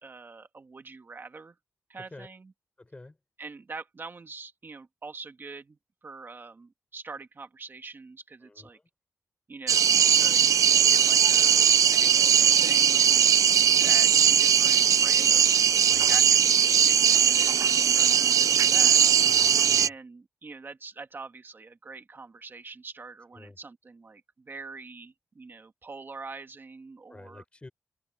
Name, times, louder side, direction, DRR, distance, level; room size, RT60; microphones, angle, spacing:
voice 1, 0.0-1.6 1.9-2.5 3.4-8.8 9.5-13.3 13.8-19.0 19.8-27.4, right 4 dB, 40° right, 2.1 m, -44 dB
voice 2, 2.0-2.3 2.8-3.2 8.4-8.8 15.9-16.2 19.3-19.9 23.3-23.6 27.1-27.7, left 2 dB, 20° left, 4.0 m, -48 dB
sound 1, 9.7-19.9, right 8 dB, 80° right, 0.4 m, -20 dB
open air
wide cardioid pair, 120°, 6 cm